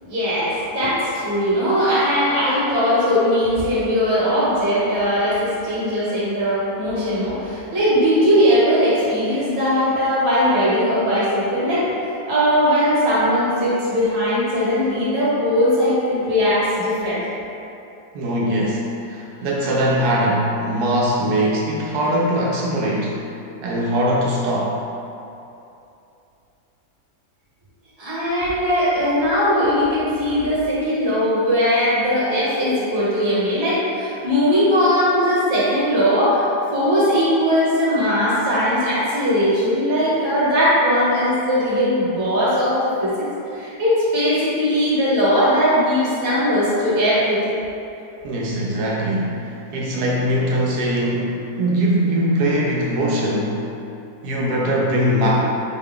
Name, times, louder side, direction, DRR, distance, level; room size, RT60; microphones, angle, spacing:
voice 1, 0.0-11.9 12.3-17.2 28.0-36.4 36.7-43.2 43.5-47.5, equal, 45° right, -9 dB, 1.4 m, -19 dB
voice 2, 18.1-23.2 23.6-24.8 48.2-53.6 54.2-55.4, equal, 85° right, -4 dB, 1.1 m, -21 dB
4.4 x 2.3 x 3.6 m, 2.8 s
omnidirectional pair, 1.6 m